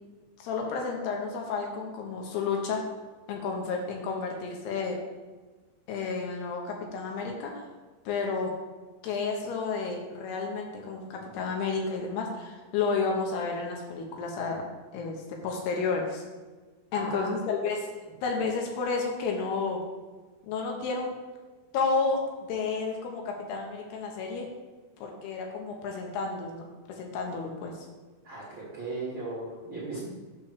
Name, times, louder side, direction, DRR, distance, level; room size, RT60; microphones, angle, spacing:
voice 1, 0.4-2.8 3.3-5.0 5.9-7.7 8.1-8.5 9.0-14.6 14.9-16.2 16.9-17.9 18.2-19.8 20.4-21.2 21.7-24.5 25.0-27.9, left 4 dB, 75° left, 1 dB, 2.8 m, -31 dB
voice 2, 16.9-17.6 28.2-30.0, right 2 dB, 60° right, -8 dB, 1.3 m, -37 dB
8.6 x 3.2 x 6.5 m, 1.3 s
omnidirectional pair, 5.0 m